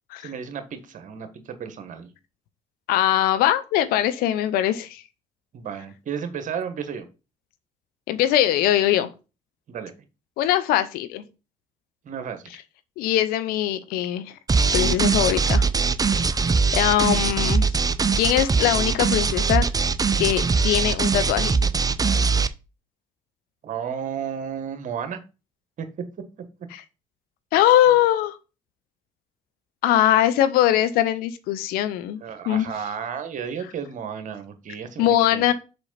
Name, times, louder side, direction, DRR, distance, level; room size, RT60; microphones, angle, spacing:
voice 1, 0.2-2.1 5.5-7.1 9.7-9.9 12.0-12.4 23.6-25.2 25.8-25.9 32.2-35.4, right 7 dB, 50° right, 1.5 m, -33 dB
voice 2, 2.9-5.0 8.1-9.1 10.4-11.2 13.0-14.4 14.7-15.7 16.2-16.3 16.7-17.7 18.2-19.7 20.2-21.5 26.7-26.8 27.5-28.4 29.8-32.7 35.0-35.5, left 12 dB, 65° left, 0.8 m, -21 dB
sound 1, 14.5-22.5, right 4 dB, 20° right, 0.6 m, -21 dB
6.8 x 5.5 x 4.2 m
figure-of-eight pair, 45°, 17 cm